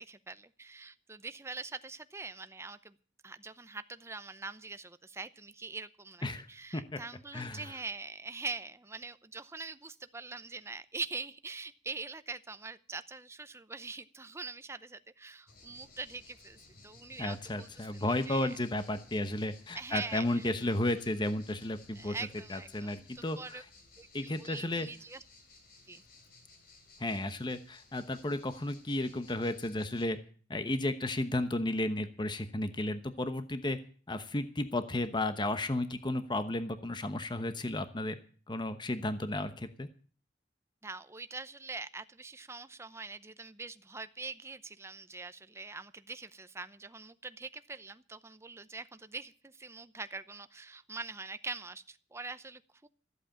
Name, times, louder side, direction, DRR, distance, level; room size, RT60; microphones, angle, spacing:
voice 1, 0.0-3.0 3.2-16.6 16.8-18.6 19.7-20.5 22.0-23.6 24.0-25.2 25.9-26.0 40.8-52.9, right 3 dB, 15° right, 13 dB, 0.7 m, -43 dB
voice 2, 7.3-7.7 17.2-22.1 22.5-23.6 24.1-24.9 27.0-30.2 30.5-33.8 34.1-38.2 38.5-39.9, left 1 dB, 25° left, 10 dB, 1.0 m, -33 dB
sound 1, 15.5-30.1, left 3 dB, 60° left, 4.0 m, -58 dB
14.5 x 8.4 x 8.7 m, 0.42 s
head